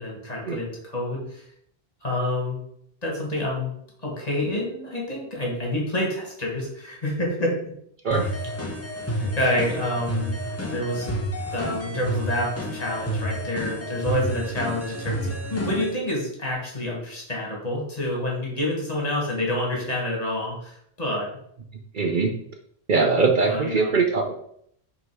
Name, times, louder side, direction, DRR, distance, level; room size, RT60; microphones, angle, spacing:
voice 1, 0.0-1.4 2.0-2.6 3.0-3.7 4.0-7.6 8.3-8.4 9.2-10.4 10.7-11.2 11.5-21.3 23.5-23.9, left 1 dB, 40° left, -2 dB, 1.8 m, -28 dB
sound 1, 8.1-15.9, equal, 15° left, 0.9 m, -30 dB
voice 2, 21.9-22.3 22.9-24.3, right 4 dB, 55° right, 3 dB, 0.8 m, -21 dB
5.4 x 3.9 x 4.7 m, 0.68 s
omnidirectional pair, 1.1 m